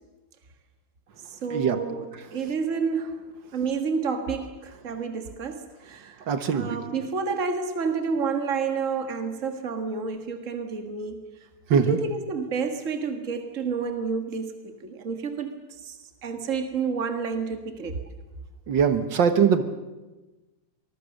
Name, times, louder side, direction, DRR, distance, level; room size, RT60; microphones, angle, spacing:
voice 1, 1.3-3.2 3.5-6.2 6.5-11.2 11.7-18.0, right 5 dB, 45° right, 6 dB, 2.1 m, -30 dB
voice 2, 6.3-6.8 11.7-12.0 18.7-19.6, right 7 dB, 75° right, 9 dB, 2.0 m, -21 dB
25.0 x 20.5 x 6.6 m, 1.1 s
omnidirectional pair, 2.0 m